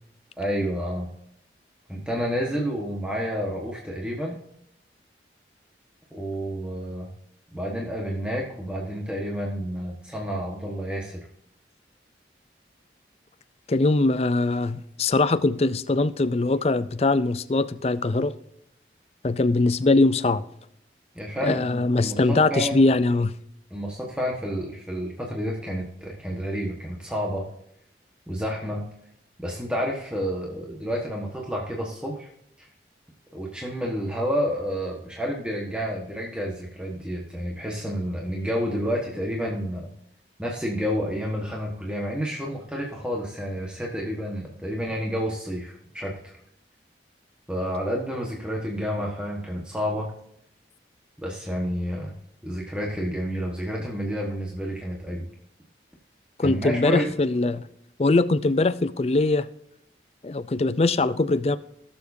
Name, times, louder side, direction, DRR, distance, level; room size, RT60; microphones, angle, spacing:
voice 1, 0.4-1.1 1.9-4.4 6.1-7.1 7.5-11.2 21.1-22.8 23.7-27.4 28.3-28.8 29.4-32.3 32.6-32.7 33.3-39.9 40.4-46.3 47.5-50.1 51.2-52.1 52.4-55.3 56.4-57.1, equal, 5° right, 1.3 m, -30 dB
voice 2, 13.7-18.3 19.2-20.4 21.4-23.3 56.4-57.6 58.0-59.5 60.2-61.6, left 2 dB, 35° left, 0.4 m, -22 dB
17.0 x 7.1 x 2.7 m
head